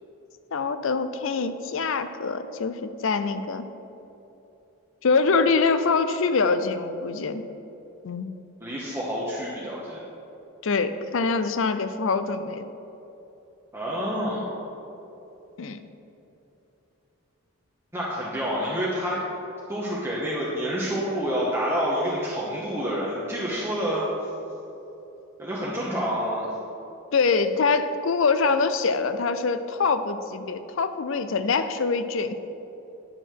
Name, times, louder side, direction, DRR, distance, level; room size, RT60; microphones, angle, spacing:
voice 1, 0.5-3.6 5.0-7.4 8.0-8.3 10.6-12.6 15.6-15.8 27.1-32.3, left 4 dB, 65° left, 11 dB, 0.5 m, -24 dB
voice 2, 8.6-10.0 13.7-14.5 17.9-19.2 19.7-24.0 25.4-26.5, equal, 10° right, -6 dB, 0.9 m, -28 dB
10.0 x 6.3 x 4.6 m, 3.0 s
head